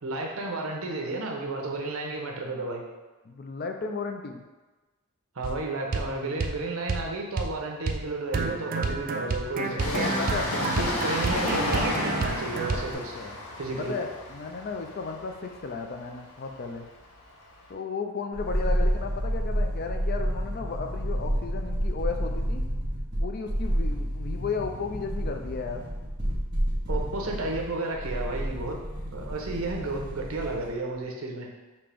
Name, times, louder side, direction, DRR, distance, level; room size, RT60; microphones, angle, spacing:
voice 1, 0.0-2.8 5.4-10.1 10.5-13.2 13.6-14.0 26.9-31.5, right 2 dB, 75° right, 1 dB, 0.7 m, -32 dB
voice 2, 3.3-4.4 9.3-10.6 12.7-13.4 13.8-16.9 17.7-22.6 23.2-25.9, left 4 dB, 45° left, 5 dB, 0.4 m, -34 dB
sound 1, 5.4-5.6 5.9-6.1 6.4-6.6 6.9-7.1 7.4-7.5 7.9-8.0 8.3-12.9, right 3 dB, 40° right, 0.3 m, -30 dB
Train, 9.8-17.2 17.5-17.6, left 1 dB, 80° left, 0.8 m, -32 dB
sound 2, 18.3-30.7 31.0-31.1, equal, 20° right, 1.0 m, -30 dB
5.2 x 2.9 x 3.4 m, 1.2 s
head